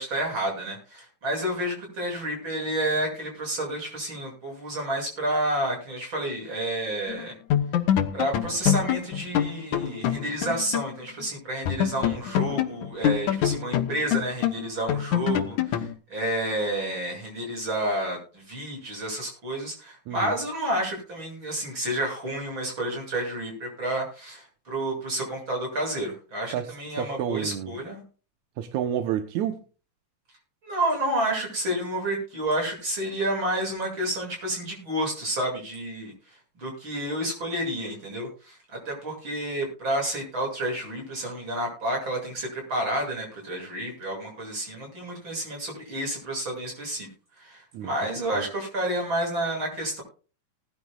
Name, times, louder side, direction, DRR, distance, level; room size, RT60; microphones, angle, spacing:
voice 1, 0.0-7.3 8.1-28.0 30.6-36.1 36.6-47.1 47.4-50.0, right 1 dB, 40° right, 0 dB, 8.0 m, -30 dB
sound 1, 7.1-7.2 7.5-11.0 11.2-11.3 11.7-15.9, left 10 dB, 85° left, 2.5 m, -25 dB
voice 2, 26.5-27.8 28.6-29.6 47.7-47.9 48.3-48.5, right 10 dB, 80° right, 7 dB, 2.3 m, -30 dB
20.0 x 11.5 x 2.4 m, 0.37 s
omnidirectional pair, 3.3 m